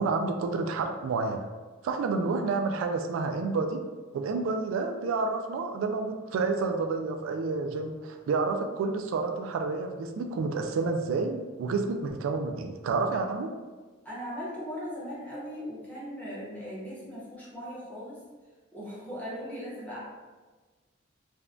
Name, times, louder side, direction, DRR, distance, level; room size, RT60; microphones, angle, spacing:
voice 1, 0.0-1.5 1.8-3.9 4.1-13.5, right 4 dB, 90° right, 6 dB, 0.3 m, -29 dB
voice 2, 14.0-18.2 18.7-20.0, equal, 10° left, -8 dB, 0.9 m, -38 dB
3.4 x 2.2 x 2.4 m, 1.3 s
head